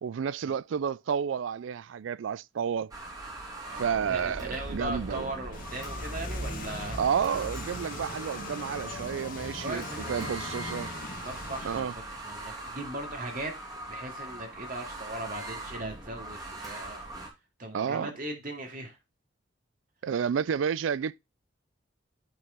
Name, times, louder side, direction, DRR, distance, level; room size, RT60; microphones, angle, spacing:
voice 1, 0.0-2.9 3.8-5.3 7.0-10.9 11.6-11.9 17.7-18.2 20.0-21.2, right 7 dB, 80° right, 0.3 m, -31 dB
sound 1, 2.9-17.3, right 2 dB, 20° right, 2.4 m, -41 dB
voice 2, 3.6-7.0 9.4-10.4 11.2-13.5 13.9-17.0 17.6-19.0, right 1 dB, 45° right, 2.3 m, -39 dB
sound 2, 5.5-11.8, left 2 dB, 45° left, 1.6 m, -39 dB
9.2 x 4.7 x 3.6 m
head